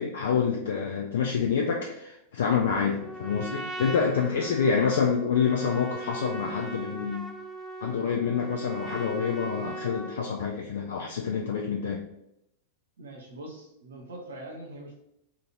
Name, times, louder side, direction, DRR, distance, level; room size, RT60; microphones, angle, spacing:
voice 1, 0.0-7.2 7.8-12.0, left 6 dB, 60° left, 0 dB, 0.3 m, -27 dB
Trumpet, 3.0-10.3, right 3 dB, 10° right, 0.4 m, -39 dB
voice 2, 13.0-15.0, right 1 dB, 65° right, 1 dB, 0.7 m, -42 dB
2.9 x 2.5 x 2.6 m, 0.81 s
figure-of-eight pair, 90°, 0 cm